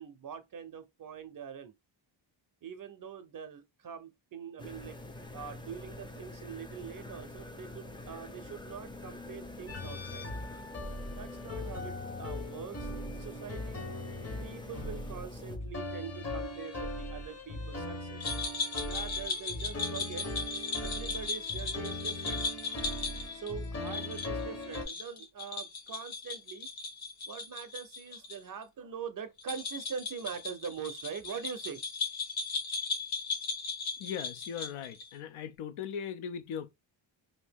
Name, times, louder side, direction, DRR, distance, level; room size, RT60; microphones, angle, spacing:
voice 1, 0.0-1.7 2.6-5.0 5.3-10.3 11.1-13.9 14.4-18.3 18.8-20.3 20.8-22.5 23.3-26.7 27.3-31.8, right 7 dB, 45° right, 0.5 m, -43 dB
sound 1, 4.6-15.6, left 2 dB, 10° left, 0.4 m, -46 dB
sound 2, 9.7-24.9, left 1 dB, 30° left, 0.8 m, -39 dB
sound 3, 18.2-28.4 28.6-28.7 29.4-35.1, left 4 dB, 65° left, 1.2 m, -37 dB
voice 2, 34.0-36.7, left 8 dB, 80° left, 0.6 m, -39 dB
2.8 x 2.6 x 3.4 m
wide cardioid pair, 130°, 49 cm